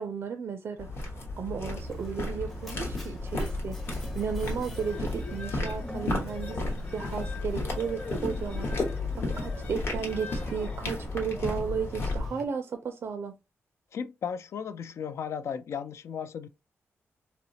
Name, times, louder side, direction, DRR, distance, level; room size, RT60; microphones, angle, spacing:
voice 1, 0.0-3.8 4.1-6.6 6.9-13.3, right 6 dB, 50° right, 0.4 m, -34 dB
sound 1, 0.8-12.3, left 2 dB, 50° left, 1.1 m, -33 dB
Mechanisms, 1.7-12.4, equal, 5° left, 0.6 m, -46 dB
sound 2, 4.6-11.4, left 2 dB, 30° left, 1.1 m, -43 dB
voice 2, 13.9-16.5, left 7 dB, 65° left, 0.3 m, -35 dB
4.1 x 2.0 x 2.7 m
wide cardioid pair, 155°, 5 cm